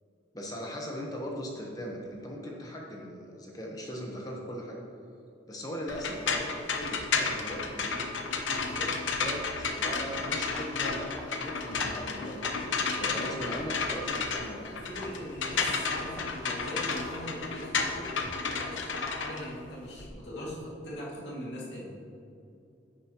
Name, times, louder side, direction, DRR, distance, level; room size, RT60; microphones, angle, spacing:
voice 1, 0.3-4.8 5.5-8.1 9.2-14.8, equal, 20° left, -1 dB, 1.0 m, -39 dB
sound 1, 5.9-20.1, left 4 dB, 85° left, 0.8 m, -32 dB
voice 2, 8.5-8.9 12.8-13.5 14.7-22.0, left 1 dB, 65° left, -4 dB, 2.3 m, -41 dB
sound 2, 9.9-10.0 10.5-10.8 11.2-12.7 13.1-13.2 13.8-14.1 14.4-14.7 15.0-15.2 15.6-15.8 16.2-16.4 16.7-18.6, equal, 5° left, 0.5 m, -50 dB
10.5 x 9.0 x 3.0 m, 2.6 s
head